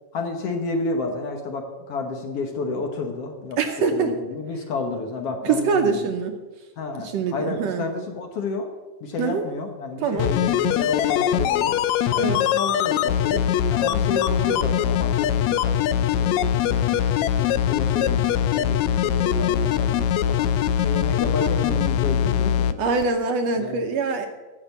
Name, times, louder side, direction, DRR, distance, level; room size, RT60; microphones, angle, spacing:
voice 1, 0.1-3.6 3.9-6.1 6.8-8.7 9.0-11.8 12.1-13.5 13.7-17.1 17.4-20.5 20.8-23.1 23.6-23.8, left 3 dB, 60° left, 4 dB, 1.8 m, -31 dB
voice 2, 3.6-4.1 5.4-6.3 7.1-7.8 9.2-9.4 10.0-10.3 12.1-12.4 22.8-24.3, right 5 dB, 70° right, 5 dB, 1.8 m, -23 dB
sound 1, 10.2-22.7 23.0-23.1, left 9 dB, 80° left, 1.7 m, -22 dB
12.0 x 6.7 x 8.1 m, 1.2 s
omnidirectional pair, 3.4 m